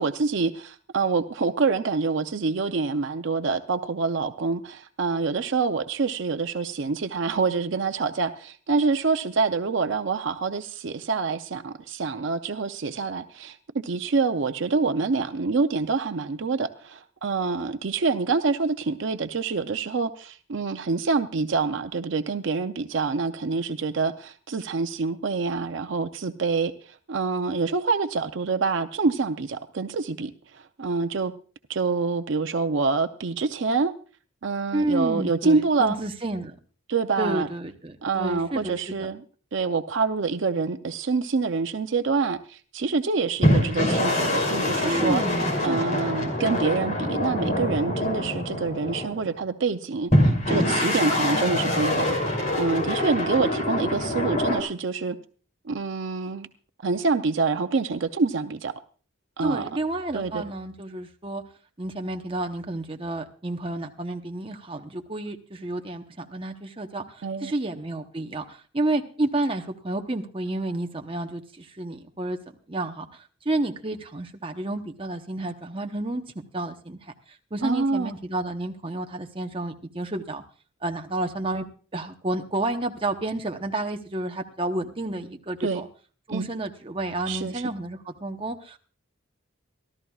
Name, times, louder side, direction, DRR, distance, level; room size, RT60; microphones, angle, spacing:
voice 1, 0.0-13.6 13.8-31.3 31.7-33.9 34.4-36.0 36.9-37.5 38.0-39.2 39.5-45.2 45.6-52.2 52.6-55.2 55.6-56.5 56.8-58.7 59.4-59.7 60.1-60.4 67.2-67.5 77.6-78.1 85.6-85.8 86.3-86.5 87.3-87.7, right 4 dB, 60° right, 8 dB, 0.5 m, -26 dB
voice 2, 34.7-36.5 37.2-39.1 44.8-46.0 46.2-46.4 59.4-61.4 61.8-72.4 72.7-76.2 76.5-77.1 77.5-80.4 80.8-81.7 81.9-85.9 86.3-88.8, right 2 dB, 25° right, 4 dB, 0.9 m, -30 dB
sound 1, 43.4-49.3 50.1-54.6, left 1 dB, 40° left, 3.0 m, -24 dB
24.5 x 13.5 x 2.4 m, 0.40 s
head